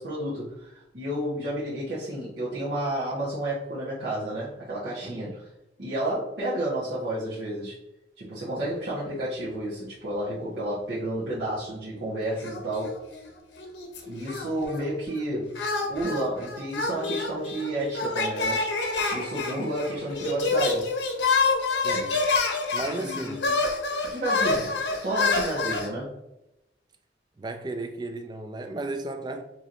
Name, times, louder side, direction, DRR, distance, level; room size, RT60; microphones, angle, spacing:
voice 1, 0.0-5.4 5.8-7.8 8.2-12.9 14.1-15.5 15.9-20.9 21.9-22.1 23.0-23.5 24.0-24.7 25.0-26.1, right 1 dB, 65° right, 1.1 m, -31 dB
voice 2, 5.0-5.3 21.7-22.2 22.7-23.4 27.4-29.4, right 2 dB, 25° right, 0.4 m, -34 dB
sound 1, 12.4-13.3 13.6-14.9 15.5-25.9, left 3 dB, 85° left, 0.7 m, -27 dB
4.5 x 3.0 x 2.6 m
head